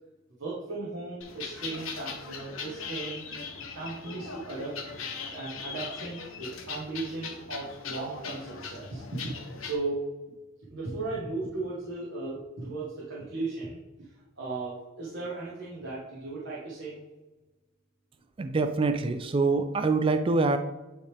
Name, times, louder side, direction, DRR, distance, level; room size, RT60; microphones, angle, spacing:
voice 1, 0.4-3.3 3.7-4.8 5.3-9.3 9.6-10.1 10.7-14.1 14.4-17.0, right 3 dB, 60° right, -7 dB, 1.3 m, -36 dB
sound 1, 1.2-9.8, left 5 dB, 70° left, 0.9 m, -40 dB
voice 2, 18.4-20.6, right 3 dB, 25° right, 8 dB, 0.3 m, -25 dB
8.8 x 3.3 x 3.4 m, 1.1 s
head